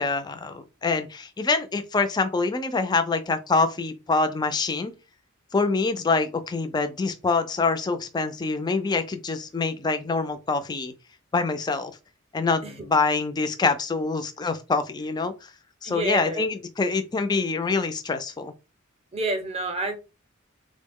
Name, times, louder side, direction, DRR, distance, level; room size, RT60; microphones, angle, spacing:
voice 1, 0.0-4.9 5.5-10.9 11.3-11.9 12.3-15.3 15.8-18.5, left 4 dB, 20° left, 0.3 m, -25 dB
voice 2, 15.8-16.4 19.1-19.9, right 2 dB, 30° right, 0.6 m, -28 dB
3.6 x 2.0 x 3.5 m
head